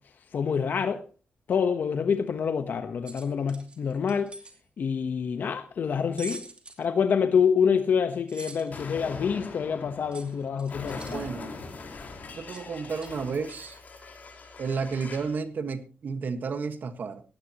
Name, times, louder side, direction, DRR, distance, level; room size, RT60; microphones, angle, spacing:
voice 1, 0.3-1.0 1.5-4.3 4.8-6.4 6.8-11.2, left 6 dB, 70° left, 1.1 m, -26 dB
sound 1, 3.0-4.6 6.2-6.8 8.3-8.8 10.1-11.2 12.5-12.6 13.0-13.1, right 3 dB, 30° right, 2.5 m, -44 dB
Explosion, 8.7-15.4, left 3 dB, 50° left, 4.5 m, -42 dB
voice 2, 11.1-11.5 12.4-13.8 14.6-17.2, right 5 dB, 60° right, 1.5 m, -32 dB
18.0 x 16.5 x 3.0 m
wide cardioid pair, 120°, 3 cm